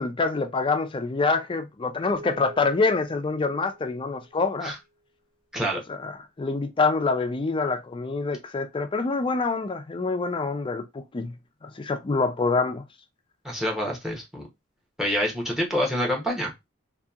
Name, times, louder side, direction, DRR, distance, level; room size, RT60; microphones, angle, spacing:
voice 1, 0.0-4.7 5.9-11.3 11.6-12.8, left 3 dB, 25° left, 0.4 m, -26 dB
sound 1, 2.1-4.7, right 1 dB, 60° right, 0.6 m, -45 dB
voice 2, 13.4-14.4 15.0-16.5, equal, ahead, 0.7 m, -27 dB
2.7 x 2.6 x 2.4 m
head